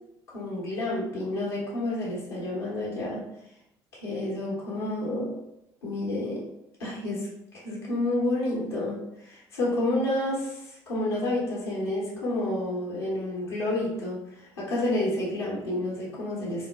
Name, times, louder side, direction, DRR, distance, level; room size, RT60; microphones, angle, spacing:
voice 1, 0.3-3.2 3.9-5.3 5.8-6.5 6.8-7.3 7.5-16.7, left 1 dB, 75° left, -6 dB, 0.9 m, -30 dB
3.8 x 2.1 x 2.3 m, 0.83 s
figure-of-eight pair, 55°, 13 cm